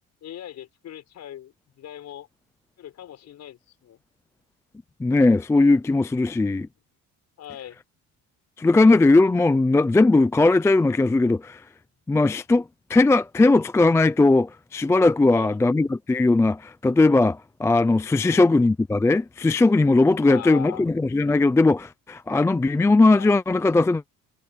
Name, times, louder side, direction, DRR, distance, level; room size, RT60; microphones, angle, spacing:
voice 1, 0.2-2.3 2.8-4.0 7.4-7.8 15.3-15.5 18.2-18.5 20.2-20.9 23.1-23.3, left 11 dB, 50° left, 6.1 m, -40 dB
voice 2, 5.0-6.7 8.6-11.6 12.1-12.6 12.9-24.0, left 2 dB, 10° left, 0.4 m, -19 dB
cardioid pair, 145°, 34 cm